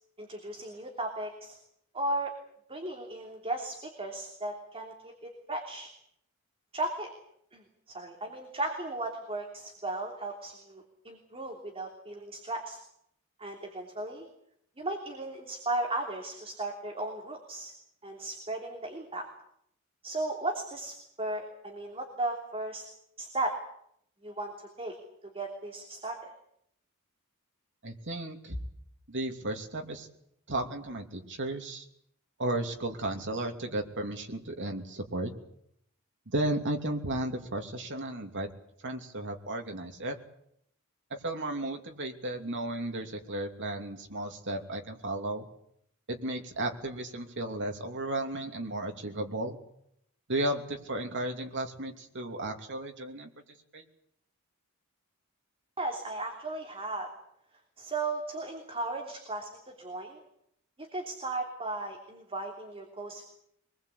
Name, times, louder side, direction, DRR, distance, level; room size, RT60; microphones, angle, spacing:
voice 1, 0.2-1.6 1.9-2.3 2.7-5.9 6.7-7.1 7.5-12.8 13.4-14.3 14.8-17.7 18.0-19.3 20.0-22.9 23.2-23.6 24.2-24.5 24.8-24.9 25.3-26.3 55.8-57.1 57.8-60.2 60.8-63.2, right 2 dB, 25° right, 1 dB, 3.2 m, -36 dB
voice 2, 27.8-28.6 29.1-30.1 30.5-31.9 32.4-35.3 36.3-38.5 38.8-40.2 41.1-45.5 46.1-49.6 50.3-53.3 53.7-53.8, right 1 dB, 55° right, 3 dB, 2.9 m, -34 dB
24.0 x 20.5 x 8.4 m, 0.72 s
head